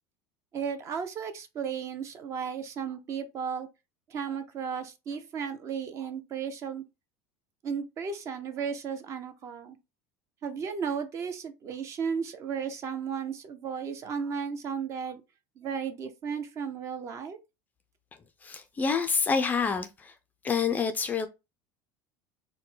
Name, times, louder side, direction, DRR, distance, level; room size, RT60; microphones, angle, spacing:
voice 1, 0.5-3.7 4.1-6.8 7.6-9.8 10.4-15.2 15.6-17.4, right 6 dB, 35° right, 0.6 m, -34 dB
voice 2, 18.4-20.2 20.4-21.3, left 5 dB, 20° left, 0.4 m, -27 dB
4.4 x 2.1 x 3.8 m
cardioid pair, 160°, 9 cm